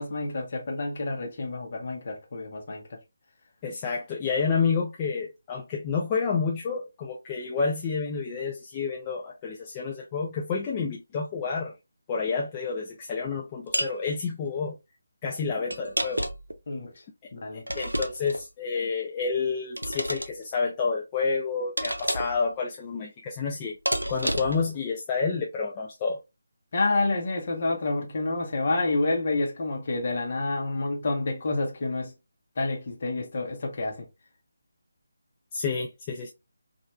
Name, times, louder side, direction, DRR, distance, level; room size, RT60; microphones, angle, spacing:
voice 1, 0.0-2.8 16.7-16.9 17.3-17.6 26.7-32.1 32.6-34.1, left 2 dB, 45° left, 0.9 m, -28 dB
voice 2, 3.6-11.7 12.1-14.8 15.2-16.2 17.5-23.8 24.1-26.2 35.5-36.3, left 5 dB, 20° left, 0.4 m, -29 dB
sound 1, 13.7-14.0 15.7-16.5 17.7-18.4 19.8-20.3 21.8-22.4 23.9-24.7, right 1 dB, 85° right, 0.5 m, -29 dB
3.0 x 2.4 x 2.2 m
figure-of-eight pair, 155°, 0 cm